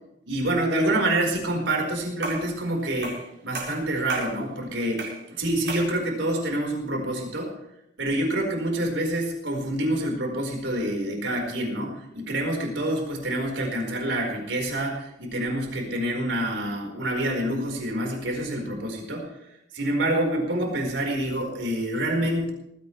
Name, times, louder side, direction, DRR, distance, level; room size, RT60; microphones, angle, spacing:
voice 1, 0.3-7.5 8.0-19.3 19.7-22.5, right 1 dB, 85° right, 1 dB, 4.7 m, -27 dB
sound 1, 2.2-2.5 3.0-3.3 3.5-4.4 5.0-5.2 5.7-5.9, right 3 dB, 70° right, 5.0 m, -33 dB
19.5 x 16.0 x 3.3 m, 0.83 s
head